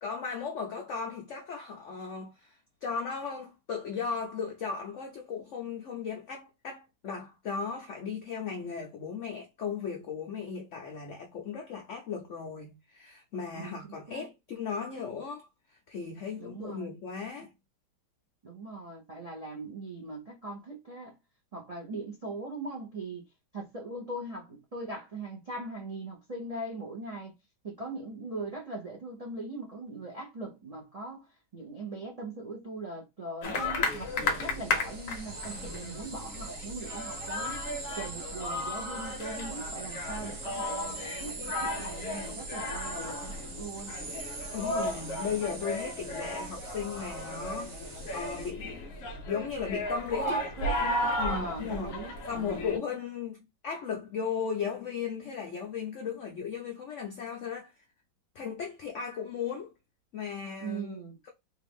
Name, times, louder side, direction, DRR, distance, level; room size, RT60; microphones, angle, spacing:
voice 1, 0.0-15.5 15.9-17.5 44.5-48.8 49.3-52.0 52.3-57.7 58.3-59.7 60.1-61.0, left 6 dB, 85° left, 0.6 m, -36 dB
voice 2, 13.5-14.2 16.4-16.9 18.4-21.1 21.5-23.2 23.5-27.3 27.6-31.3 31.5-37.6 37.9-43.9 50.2-52.8 60.6-61.2, right 2 dB, 70° right, 0.3 m, -40 dB
sound 1, 33.4-52.8, left 1 dB, 55° left, 1.0 m, -35 dB
sound 2, 33.8-48.5, right 3 dB, 45° right, 0.8 m, -43 dB
3.3 x 2.4 x 3.5 m
omnidirectional pair, 2.0 m